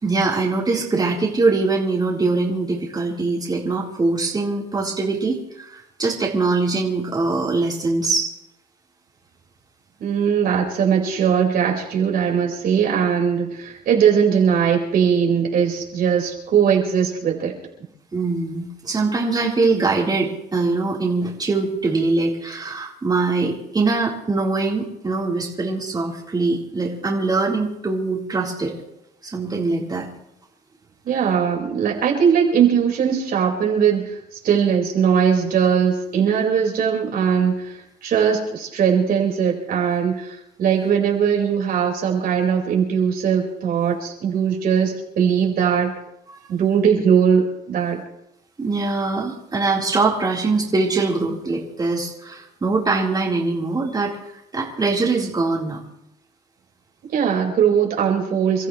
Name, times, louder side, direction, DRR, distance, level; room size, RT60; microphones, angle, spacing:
voice 1, 0.0-8.3 18.1-28.7 29.2-30.1 48.6-54.2 54.5-55.8, right 3 dB, 25° right, -4 dB, 4.2 m, -22 dB
voice 2, 10.0-17.6 31.0-45.9 46.5-48.0 57.1-58.7, right 7 dB, 60° right, -1 dB, 5.1 m, -20 dB
29.5 x 14.5 x 3.3 m, 0.83 s
cardioid pair, 110°, 17 cm